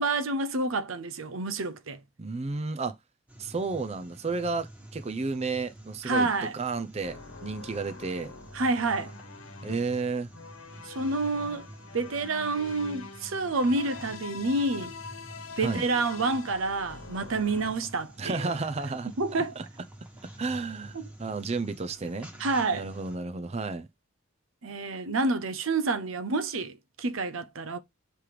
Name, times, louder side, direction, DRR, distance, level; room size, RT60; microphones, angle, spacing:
voice 1, 0.0-2.0 6.0-6.5 8.5-9.1 10.8-11.7 11.9-14.9 15.6-18.5 19.2-19.6 20.9-21.0 22.4-22.9 24.6-27.8, right 3 dB, 70° right, 0.7 m, -28 dB
voice 2, 2.2-3.0 3.4-6.3 6.5-8.3 9.6-10.3 15.6-15.8 18.2-19.1 19.4-19.7 20.4-22.3 22.7-23.9, right 3 dB, 30° right, 0.6 m, -32 dB
sound 1, 3.3-23.2, right 1 dB, 5° right, 1.3 m, -48 dB
sound 2, 7.0-17.7, left 4 dB, 80° left, 1.2 m, -45 dB
7.5 x 3.3 x 4.9 m
head